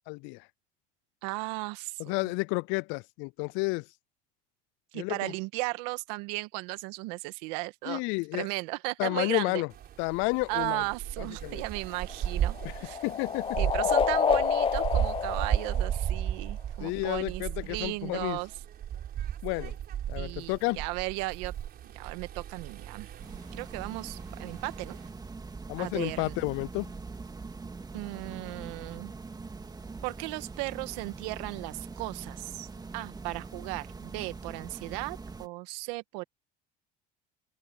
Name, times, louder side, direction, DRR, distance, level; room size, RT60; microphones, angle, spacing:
voice 1, 0.1-0.4 2.0-3.8 4.9-5.3 7.9-8.5 9.0-9.7 10.0-10.8 11.4-11.6 12.6-12.7 13.0-13.6 16.8-18.4 19.4-19.7 20.1-20.8 25.7-26.9, left 28 dB, 70° left, 0.4 m, -31 dB
voice 2, 1.2-2.2 4.9-8.0 8.3-9.6 10.5-13.0 13.5-18.5 20.1-21.5 21.8-23.1 23.5-25.0 25.8-26.3 27.9-29.1 30.0-32.7 32.9-36.2, right 23 dB, 80° right, 1.5 m, -36 dB
sound 1, 9.7-25.1, right 10 dB, 50° right, 4.0 m, -35 dB
sound 2, 11.8-16.5, left 6 dB, 25° left, 0.7 m, -29 dB
sound 3, 23.2-35.5, right 4 dB, 20° right, 2.1 m, -43 dB
open air
supercardioid pair, 95°, 21 cm